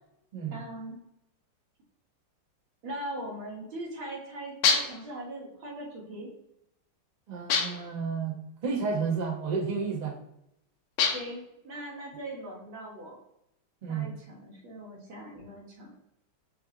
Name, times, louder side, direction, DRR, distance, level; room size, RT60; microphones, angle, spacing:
voice 1, 0.5-0.9 2.8-6.3 11.1-13.1 13.9-16.0, right 1 dB, 75° right, -2 dB, 2.1 m, -40 dB
sound 1, 4.6-5.1 7.5-8.0 11.0-11.4, left 5 dB, 80° left, 1.5 m, -26 dB
voice 2, 7.3-8.4 8.6-10.1 13.8-14.1, right 5 dB, 50° right, -3 dB, 0.5 m, -31 dB
5.5 x 2.7 x 2.8 m, 0.81 s
omnidirectional pair, 2.3 m